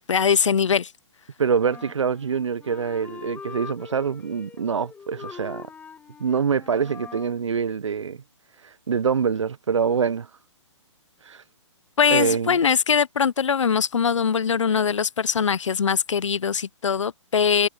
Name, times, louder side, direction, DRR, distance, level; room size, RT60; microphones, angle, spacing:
voice 1, 0.1-0.9 12.0-17.7, left 6 dB, 75° left, 0.7 m, -22 dB
voice 2, 1.4-5.7 6.2-8.2 8.6-10.3 11.2-11.4 12.1-12.6, right 6 dB, 75° right, 0.9 m, -25 dB
Wind instrument woodwind instrument, 1.6-7.4, left 6 dB, 10° left, 4.7 m, -42 dB
figure-of-eight pair, 130°, 16 cm